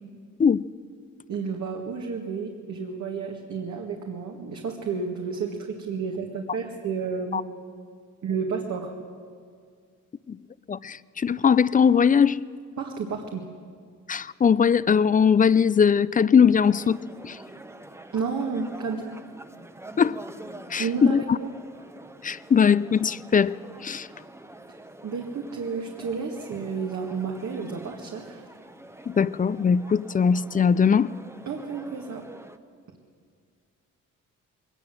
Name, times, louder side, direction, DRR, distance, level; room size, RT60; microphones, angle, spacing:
voice 1, 1.3-7.4 8.2-8.9 12.8-13.5 18.1-19.1 20.8-21.5 25.0-28.4 31.5-32.3, right 5 dB, 65° right, 1 dB, 2.0 m, -31 dB
voice 2, 10.7-12.4 14.1-17.4 20.0-20.2 20.7-21.4 22.2-24.1 29.1-31.1, left 6 dB, 25° left, 18 dB, 0.5 m, -20 dB
sound 1, 16.6-32.6, right 1 dB, 10° right, 1.0 m, -46 dB
21.0 x 19.0 x 7.7 m, 2.1 s
cardioid pair, 100°, 31 cm